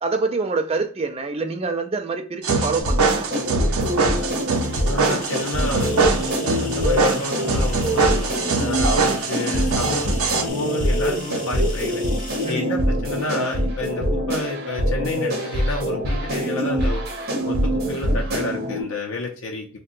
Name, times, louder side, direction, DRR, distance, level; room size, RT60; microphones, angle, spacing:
voice 1, 0.0-3.3 12.4-12.7, right 4 dB, 25° right, 0.4 m, -26 dB
sound 1, 2.4-10.4, right 4 dB, 85° right, 0.6 m, -23 dB
sound 2, 2.8-18.8, equal, 50° right, 0.8 m, -24 dB
sound 3, 4.2-12.5, left 2 dB, 35° left, 1.1 m, -39 dB
voice 2, 4.7-6.0 6.6-12.0 12.5-17.0 17.4-19.7, left 2 dB, 70° left, 0.6 m, -30 dB
2.7 x 2.2 x 3.7 m
head